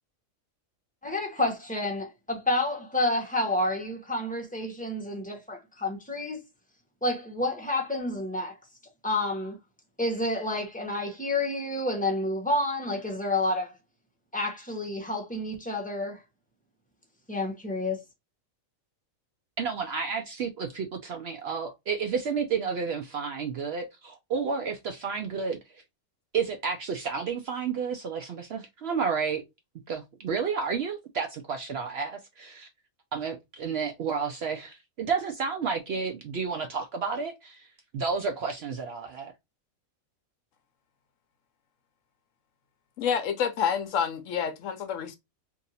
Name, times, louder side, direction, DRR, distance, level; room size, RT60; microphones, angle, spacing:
voice 1, 1.0-6.4 7.0-8.6 9.0-9.6 10.0-13.7 14.3-16.2 17.3-18.0, left 2 dB, 5° left, 0.8 m, -29 dB
voice 2, 19.6-25.8 26.3-29.4 29.9-32.7 33.1-37.7 37.9-39.3, right 5 dB, 65° right, 0.7 m, -31 dB
voice 3, 43.0-45.2, left 7 dB, 70° left, 0.9 m, -28 dB
2.8 x 2.6 x 3.9 m
omnidirectional pair, 1.4 m